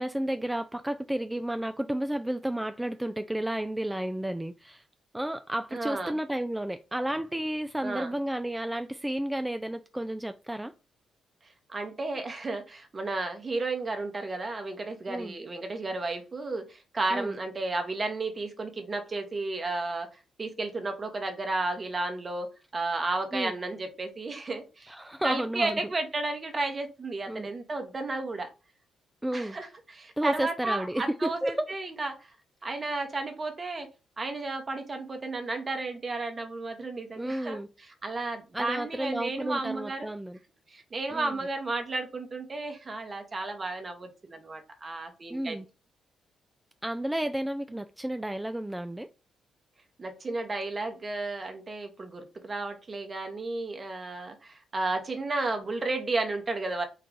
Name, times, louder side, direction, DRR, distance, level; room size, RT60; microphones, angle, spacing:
voice 1, 0.0-4.8 5.1-10.7 15.1-15.4 17.1-17.4 23.3-23.5 24.9-25.8 27.3-27.5 29.2-29.6 30.2-31.7 37.2-37.7 38.5-40.4 41.1-41.3 45.3-45.6 46.8-49.1, right 1 dB, 10° right, 0.3 m, -32 dB
voice 2, 5.7-6.2 7.8-8.1 11.7-20.1 20.4-25.0 25.2-28.5 29.3-32.2 32.6-33.9 34.2-37.6 38.0-40.1 40.7-45.6 50.0-56.9, right 2 dB, 40° right, 1.1 m, -33 dB
4.6 x 2.4 x 3.8 m
hypercardioid pair, 50°, 0 cm